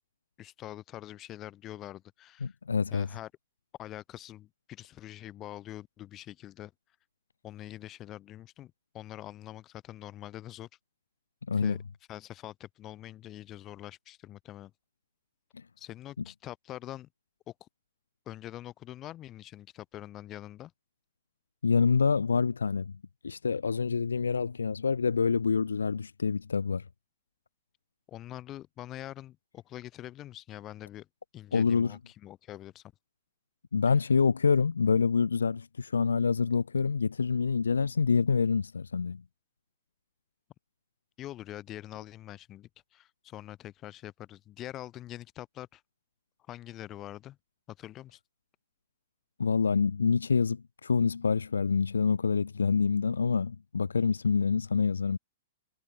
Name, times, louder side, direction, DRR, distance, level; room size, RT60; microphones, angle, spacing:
voice 1, 0.4-2.6 2.9-3.3 3.8-6.7 7.4-10.7 11.5-11.8 12.1-14.7 15.8-17.1 17.5-17.7 18.3-20.7 28.1-31.1 31.3-32.8 41.2-45.8 46.5-47.4 47.7-48.2, left 13 dB, 25° left, 2.4 m, -44 dB
voice 2, 2.4-3.1 11.5-11.8 15.5-15.6 21.6-22.9 23.2-26.8 31.5-32.0 33.7-39.2 49.4-55.2, left 5 dB, 70° left, 0.4 m, -26 dB
figure-of-eight pair, 105°, 0 cm